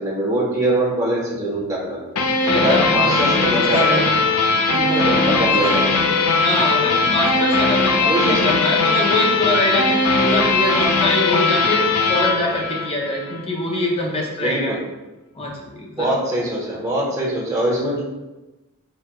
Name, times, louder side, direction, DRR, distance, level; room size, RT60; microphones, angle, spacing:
voice 1, 0.0-2.0 2.5-4.0 4.9-6.2 8.1-8.5 14.4-14.8 16.0-18.0, right 1 dB, 15° right, -7 dB, 1.1 m, -22 dB
sound 1, 2.2-13.4, left 3 dB, 75° left, 0.5 m, -19 dB
voice 2, 2.4-4.2 4.7-5.9 6.4-11.8 12.1-14.7 15.3-16.1, left 1 dB, 25° left, -1 dB, 0.6 m, -24 dB
4.5 x 3.4 x 2.3 m, 1.1 s
head